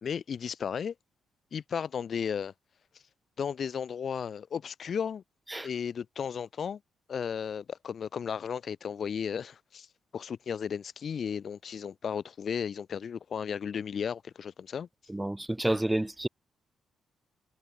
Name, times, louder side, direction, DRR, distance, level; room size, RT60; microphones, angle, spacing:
voice 1, 0.0-0.9 1.5-2.5 3.4-5.2 5.6-6.8 7.1-9.9 10.1-14.9, left 7 dB, 55° left, 0.8 m, -34 dB
voice 2, 15.1-16.3, right 1 dB, 10° right, 0.4 m, -29 dB
cardioid pair, 90°, 0 cm